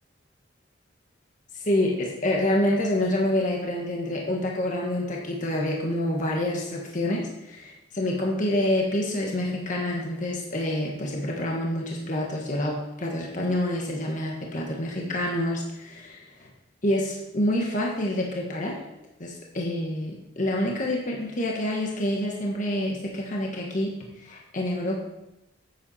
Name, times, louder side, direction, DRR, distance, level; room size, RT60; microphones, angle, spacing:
voice 1, 1.5-16.5 16.8-18.8 19.2-25.0, left 1 dB, 45° left, -1 dB, 1.5 m, -27 dB
10.0 x 8.5 x 4.3 m, 0.90 s
head